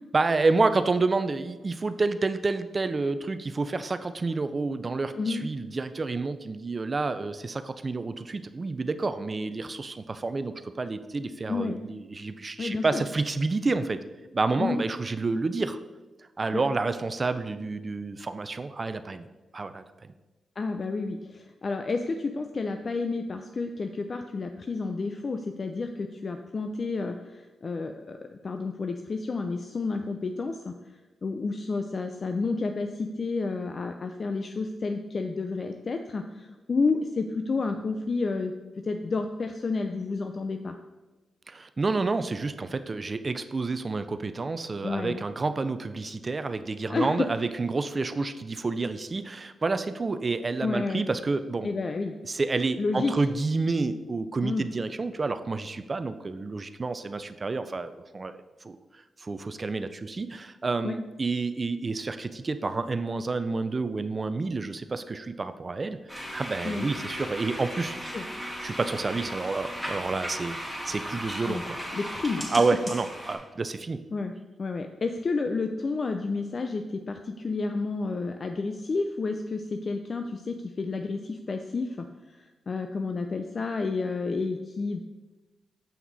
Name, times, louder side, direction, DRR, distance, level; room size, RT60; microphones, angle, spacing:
voice 1, 0.1-14.0 14.3-15.8 16.4-19.3 19.5-20.1 41.5-51.7 52.2-58.3 58.6-58.8 59.2-68.0 68.6-70.6 70.9-71.8 72.5-74.0, right 3 dB, 40° right, 11 dB, 0.5 m, -29 dB
voice 2, 11.5-11.8 12.6-13.0 14.6-14.8 16.5-16.6 20.6-30.7 31.2-40.7 44.8-45.2 46.9-47.3 50.6-51.0 51.6-52.1 52.8-53.1 54.4-54.6 60.8-61.0 66.6-66.9 68.1-68.3 71.4-71.6 71.9-72.5 74.1-74.3 74.6-82.1 82.3-85.0, left 3 dB, 50° left, 6 dB, 0.5 m, -30 dB
sound 1, 66.1-73.4, equal, 10° left, 2.4 m, -36 dB
7.3 x 5.8 x 4.1 m, 1.2 s
supercardioid pair, 55°, 0 cm